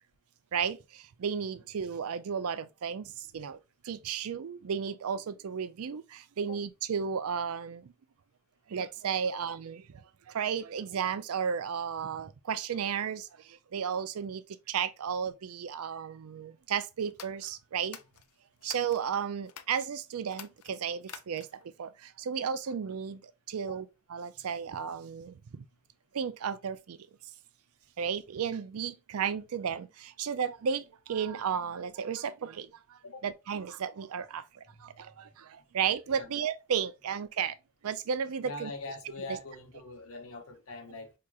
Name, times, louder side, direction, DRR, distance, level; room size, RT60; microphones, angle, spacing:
voice 1, 0.5-3.6 3.8-7.9 8.7-10.0 10.3-14.4 14.7-18.0 18.6-25.7 26.1-27.0 28.0-34.4 34.8-37.6 37.8-38.7 39.3-39.4, right 7 dB, 75° right, 0.4 m, -34 dB
sound 1, 17.1-19.0 19.5-19.9 20.3-21.7, left 9 dB, 85° left, 0.5 m, -49 dB
voice 2, 34.7-35.3 36.1-36.3 38.4-41.1, left 2 dB, 70° left, 0.9 m, -43 dB
4.7 x 2.9 x 2.3 m
head